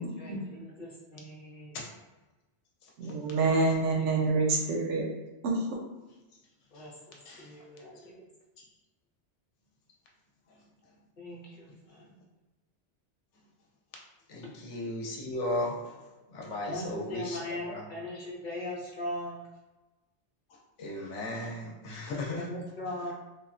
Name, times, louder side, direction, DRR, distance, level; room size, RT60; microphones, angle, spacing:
voice 1, 0.0-1.8 4.0-4.4 6.7-8.2 11.2-12.2 16.6-19.4 22.4-23.1, left 1 dB, 50° left, -4 dB, 0.8 m, -40 dB
voice 2, 3.0-5.0 5.4-5.6, right 3 dB, 85° right, -1 dB, 1.0 m, -27 dB
voice 3, 14.3-16.0 16.3-17.4 17.7-17.9 20.8-22.5, left 1 dB, 85° left, -1 dB, 1.0 m, -35 dB
3.3 x 2.1 x 2.4 m, 1.1 s
omnidirectional pair, 1.2 m